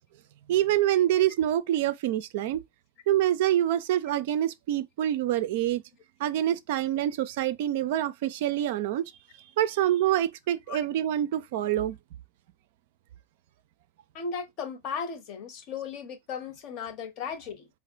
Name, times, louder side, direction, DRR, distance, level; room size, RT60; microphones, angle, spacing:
voice 1, 0.5-2.6 3.1-5.8 6.2-9.1 9.6-12.0, right 12 dB, 50° right, 0.4 m, -26 dB
voice 2, 14.1-17.7, left 6 dB, 40° left, 0.8 m, -36 dB
3.9 x 2.0 x 4.4 m
figure-of-eight pair, 90°, 0 cm